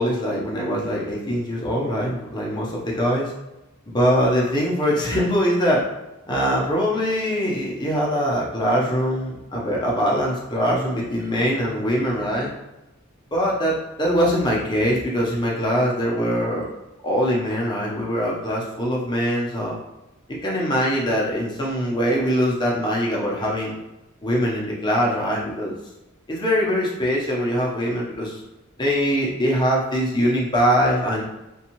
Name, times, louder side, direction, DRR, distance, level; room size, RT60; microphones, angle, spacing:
voice 1, 0.0-3.3 3.9-5.8 6.3-12.5 13.3-16.7 17.0-19.8 20.3-23.8 24.2-25.7 26.3-28.4 28.8-31.2, equal, 20° left, -3 dB, 0.6 m, -22 dB
2.6 x 2.3 x 2.9 m, 0.98 s
head